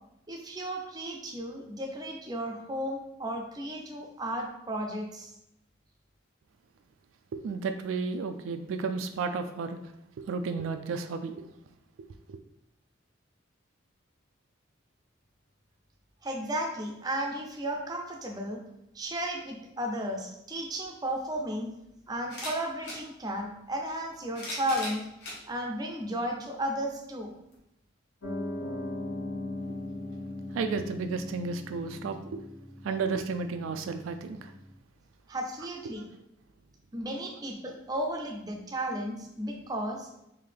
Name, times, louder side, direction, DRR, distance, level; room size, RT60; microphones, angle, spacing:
voice 1, 0.3-5.3 16.2-18.6 18.9-21.7 22.1-25.1 25.5-27.4 35.3-36.1 36.9-40.1, right 1 dB, 20° right, 1 dB, 0.5 m, -34 dB
voice 2, 7.3-9.8 10.2-11.4 12.3-12.4 30.5-32.4 32.8-34.5 35.9-36.1, right 4 dB, 85° right, 7 dB, 0.3 m, -33 dB
sound 1, 20.8-20.9 22.2-23.0 24.0-25.4 26.1-26.2 27.5-27.6, left 1 dB, 55° left, 1.1 m, -39 dB
Piano, 28.2-34.8, left 2 dB, 75° left, 0.8 m, -39 dB
3.7 x 2.6 x 3.3 m, 0.84 s
head